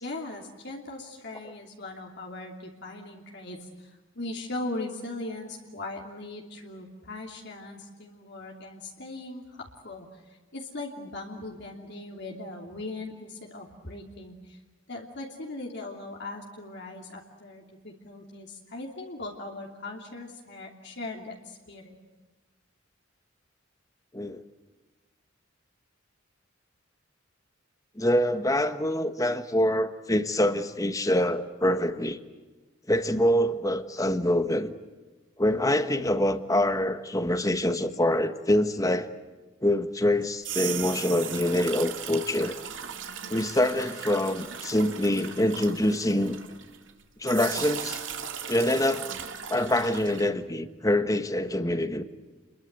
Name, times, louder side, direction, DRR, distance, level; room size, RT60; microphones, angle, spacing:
voice 1, 0.0-14.6 14.9-22.0, left 2 dB, 60° left, 2.9 m, -39 dB
voice 2, 28.0-32.2 32.9-34.7 35.4-39.1 39.6-42.5 43.3-46.4 47.2-48.0 48.5-49.1 49.5-52.0, left 1 dB, 15° left, 1.3 m, -25 dB
sound 1, 40.2-46.9 47.2-50.3, right 8 dB, 65° right, 2.6 m, -37 dB
30.0 x 22.5 x 8.1 m
head